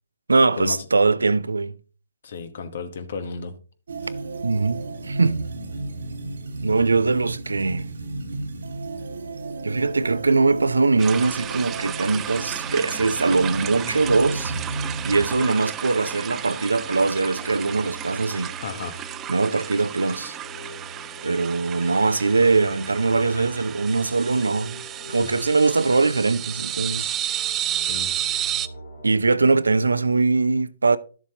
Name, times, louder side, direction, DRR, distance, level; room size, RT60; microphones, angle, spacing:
voice 1, 0.3-1.7 4.4-5.5 6.6-7.9 9.6-14.5 15.0-18.5 19.3-20.4 21.2-24.8 25.1-27.1 29.0-31.0, right 3 dB, 90° right, 0.5 m, -21 dB
voice 2, 2.2-3.5 4.0-4.1 18.6-19.0 25.1-25.3 27.8-28.1, left 5 dB, 60° left, 1.2 m, -33 dB
sound 1, 3.9-15.4, right 2 dB, 75° right, 1.3 m, -33 dB
sound 2, 11.0-28.7, right 11 dB, 20° right, 0.4 m, -32 dB
sound 3, 12.6-29.2, equal, 80° left, 4.7 m, -43 dB
11.5 x 7.2 x 2.9 m
hypercardioid pair, 140°, 0 cm